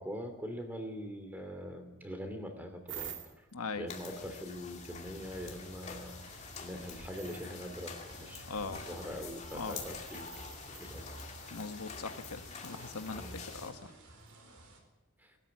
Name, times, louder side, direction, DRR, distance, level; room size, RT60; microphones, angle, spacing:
voice 1, 0.0-3.5 3.7-10.4 10.7-11.3 11.6-11.9 13.1-13.4 15.2-15.4, equal, 10° right, 6 dB, 2.8 m, -43 dB
sound 1, 2.9-3.5 5.9-6.0 6.4-7.5 9.5-11.4 12.2-13.3 14.3-14.4, right 9 dB, 50° right, 2.4 m, -49 dB
voice 2, 3.5-3.9 8.5-8.8 9.5-9.8 11.5-13.2 13.5-13.9, left 4 dB, 85° left, 9 dB, 1.3 m, -40 dB
sound 2, 3.9-13.7, left 5 dB, 30° left, 2.5 m, -47 dB
sound 3, 5.2-14.8, right 1 dB, 85° right, 4.4 m, -54 dB
20.5 x 13.0 x 9.7 m, 1.2 s
head